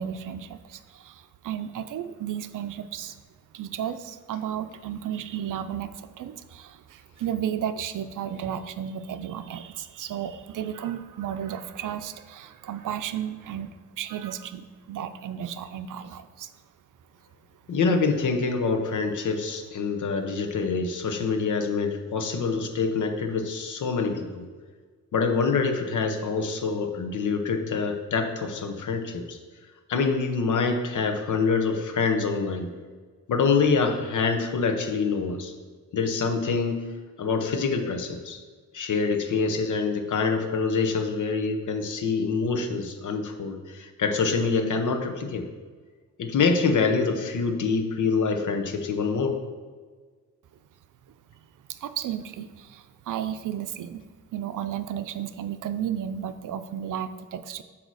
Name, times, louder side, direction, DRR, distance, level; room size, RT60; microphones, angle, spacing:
voice 1, 0.0-3.2 3.5-16.5 51.3-54.0 54.3-57.6, right 9 dB, 90° right, 11 dB, 0.5 m, -33 dB
voice 2, 17.7-24.5 25.1-29.4 29.9-32.7 33.3-35.5 35.9-36.9 37.2-38.4 38.7-45.5 46.2-49.4, left 4 dB, 75° left, 5 dB, 0.8 m, -25 dB
8.0 x 2.9 x 6.2 m, 1.5 s
wide cardioid pair, 170°, 30 cm